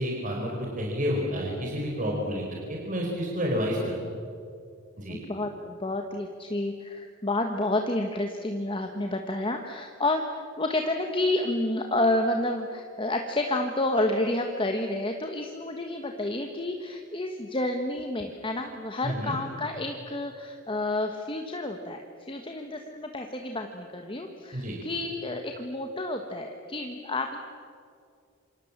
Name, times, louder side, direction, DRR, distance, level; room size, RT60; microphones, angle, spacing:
voice 1, 0.0-3.9 5.0-5.2 19.0-19.3 24.5-24.8, equal, 40° right, -1 dB, 4.7 m, -30 dB
voice 2, 5.1-27.4, left 2 dB, 25° left, 4 dB, 1.5 m, -30 dB
28.0 x 26.0 x 7.5 m, 2.3 s
head